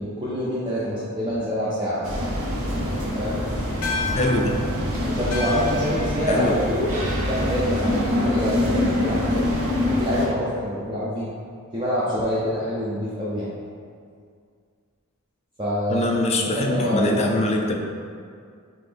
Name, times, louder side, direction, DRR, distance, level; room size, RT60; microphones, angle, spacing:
voice 1, 0.0-2.1 3.1-3.4 5.1-9.4 9.9-11.3 11.7-13.5 15.6-16.1 16.4-17.4, equal, 20° right, -9 dB, 0.5 m, -26 dB
sound 1, 2.0-10.3, left 1 dB, 65° right, 0.8 m, -25 dB
sound 2, 3.8-8.5, left 3 dB, 85° left, 0.5 m, -34 dB
voice 2, 4.1-4.6 6.3-6.5 15.9-17.8, left 2 dB, 30° left, 2 dB, 0.3 m, -23 dB
3.9 x 2.9 x 3.3 m, 2.2 s
head